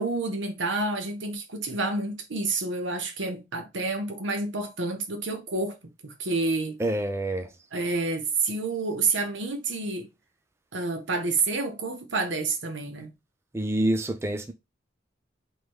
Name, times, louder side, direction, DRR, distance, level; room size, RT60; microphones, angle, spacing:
voice 1, 0.0-5.8 6.0-6.8 7.7-10.1 10.7-13.1, right 3 dB, 90° right, 1.0 m, -29 dB
voice 2, 6.8-7.5 13.5-14.5, right 1 dB, 15° right, 0.5 m, -27 dB
3.3 x 3.0 x 4.4 m
head